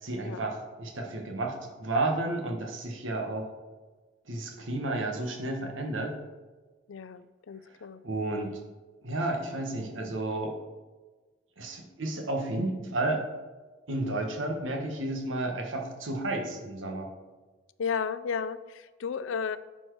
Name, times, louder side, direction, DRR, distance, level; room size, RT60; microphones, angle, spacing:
voice 1, 0.0-3.5 4.3-6.1 8.0-8.5 9.0-10.5 11.6-13.2 13.9-17.1, right 2 dB, 80° right, 2 dB, 1.4 m, -32 dB
voice 2, 6.9-8.0 17.8-19.6, left 6 dB, 80° left, 14 dB, 0.4 m, -33 dB
10.5 x 4.5 x 4.7 m, 1.3 s
head